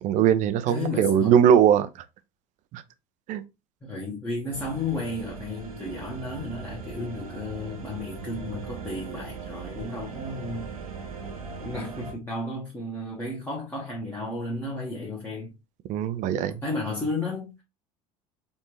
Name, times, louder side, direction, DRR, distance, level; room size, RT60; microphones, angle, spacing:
voice 1, 0.0-1.9 2.7-2.8 3.3-3.4 15.9-16.6, right 9 dB, 40° right, 0.5 m, -20 dB
voice 2, 0.7-1.3 3.8-10.7 11.6-15.5 16.6-17.6, left 2 dB, 10° left, 1.3 m, -33 dB
sound 1, 4.5-12.1, right 5 dB, 80° right, 0.9 m, -39 dB
4.6 x 2.7 x 3.0 m
figure-of-eight pair, 70°, 18 cm